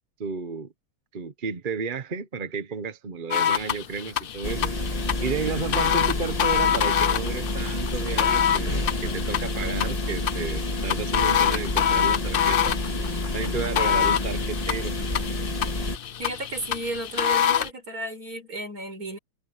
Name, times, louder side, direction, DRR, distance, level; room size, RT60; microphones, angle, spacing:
voice 1, 0.2-0.7 1.1-4.7 5.2-12.8 13.3-14.9, right 5 dB, 35° right, 1.0 m, -32 dB
sound 1, 3.3-17.7, left 9 dB, 90° left, 0.4 m, -26 dB
sound 2, 4.4-16.0, left 2 dB, 20° left, 2.1 m, -29 dB
voice 2, 16.2-19.2, right 1 dB, 60° right, 5.6 m, -33 dB
omnidirectional pair, 1.7 m